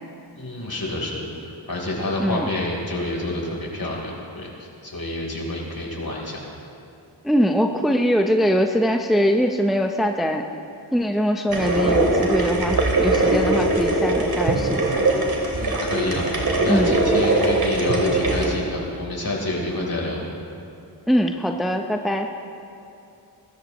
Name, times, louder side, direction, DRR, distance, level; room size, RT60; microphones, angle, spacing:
voice 1, 0.3-6.4 15.5-16.3 16.6-20.2, left 1 dB, 50° left, -2 dB, 4.0 m, -28 dB
voice 2, 7.2-10.4 10.9-15.0 16.7-16.9 21.1-22.3, equal, ahead, 3 dB, 0.8 m, -22 dB
sound 1, 11.5-18.5, right 2 dB, 50° right, 2.8 m, -21 dB
23.0 x 13.5 x 3.1 m, 2.7 s
cardioid pair, 50°, 45 cm